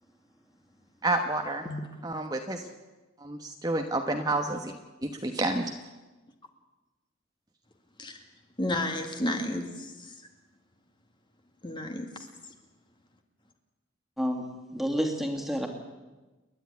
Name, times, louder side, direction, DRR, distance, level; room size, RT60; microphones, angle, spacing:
voice 1, 1.0-1.6 2.0-2.6 3.2-4.7 5.0-5.6, right 2 dB, 20° right, 4 dB, 1.2 m, -29 dB
voice 2, 8.6-10.3 11.6-12.3, left 1 dB, 25° left, 5 dB, 2.1 m, -32 dB
voice 3, 14.7-15.7, equal, ahead, 3 dB, 2.7 m, -29 dB
29.0 x 11.0 x 9.7 m, 1.2 s
head